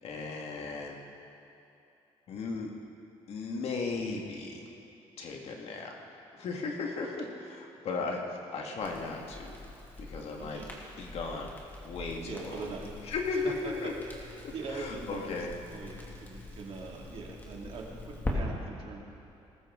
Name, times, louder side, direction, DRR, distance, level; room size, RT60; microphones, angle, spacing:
voice 1, 0.0-1.3 2.3-2.7 3.3-4.7 5.2-9.6 10.0-10.6 11.0-12.6 13.0-13.9 14.4-15.5, left 4 dB, 65° left, 0 dB, 2.0 m, -36 dB
Crackle, 8.8-18.3, left 1 dB, 15° left, 2.3 m, -43 dB
voice 2, 12.2-12.9 13.8-13.9 14.5-15.3 15.7-19.0, right 4 dB, 55° right, -1 dB, 2.5 m, -42 dB
19.0 x 14.5 x 3.9 m, 2.9 s
cardioid pair, 130°, 11 cm